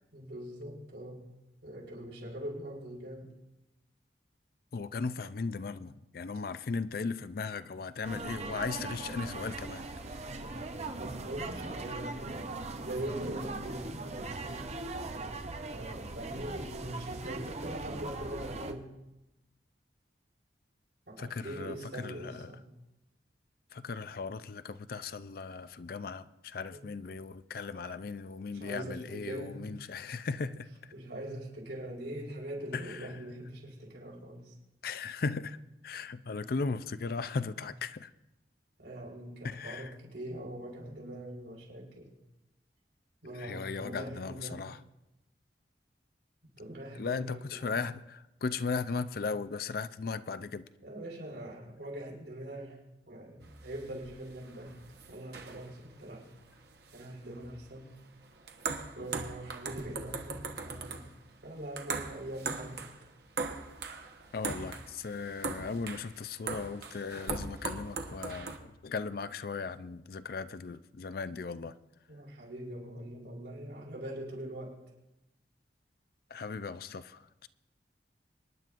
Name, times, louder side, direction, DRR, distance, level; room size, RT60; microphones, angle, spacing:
voice 1, 0.1-1.2 1.6-3.3 10.0-10.5 10.9-12.5 12.8-14.8 15.7-18.9 21.1-22.6 26.7-26.9 28.5-29.6 30.4-30.5 30.9-34.5 38.8-42.1 43.2-44.6 46.6-47.8 50.8-52.8 53.1-54.8 55.1-56.2 56.9-58.0 58.9-61.0 61.4-62.9 72.1-74.7, right 1 dB, 85° right, 5.2 m, -42 dB
voice 2, 4.7-9.8 21.2-22.5 23.7-30.7 32.7-33.1 34.8-35.6 35.8-38.1 39.4-39.9 43.4-44.8 46.9-50.7 59.0-59.1 64.3-71.7 76.3-77.5, left 4 dB, 55° left, 0.4 m, -37 dB
sound 1, 8.0-18.7, right 2 dB, 40° right, 0.7 m, -40 dB
sound 2, 53.4-68.6, right 4 dB, 65° right, 1.1 m, -40 dB
26.0 x 10.5 x 2.5 m
head